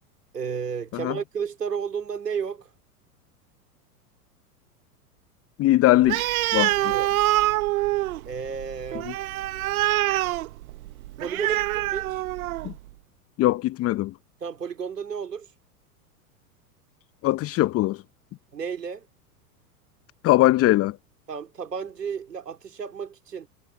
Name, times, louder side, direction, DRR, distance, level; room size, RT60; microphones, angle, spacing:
voice 1, 0.3-2.7 6.8-7.1 8.3-9.1 11.2-12.2 14.4-15.5 18.5-19.1 21.3-23.5, right 6 dB, 85° right, 3.6 m, -32 dB
voice 2, 5.6-6.8 12.6-12.7 13.4-14.1 17.2-18.0 20.2-21.0, left 16 dB, 30° left, 0.9 m, -21 dB
Animal, 6.0-12.8, right 16 dB, 65° right, 1.5 m, -25 dB
hypercardioid pair, 95°, 47 cm